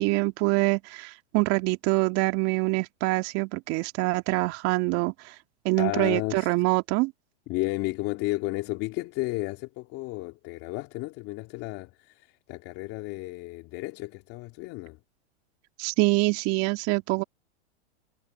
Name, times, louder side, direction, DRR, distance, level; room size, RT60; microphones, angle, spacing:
voice 1, 0.0-5.1 5.6-7.1 15.8-17.2, right 24 dB, 45° right, 2.3 m, -25 dB
voice 2, 5.8-6.6 7.5-15.0, left 21 dB, 45° left, 2.5 m, -33 dB
hypercardioid pair, 125°, 34 cm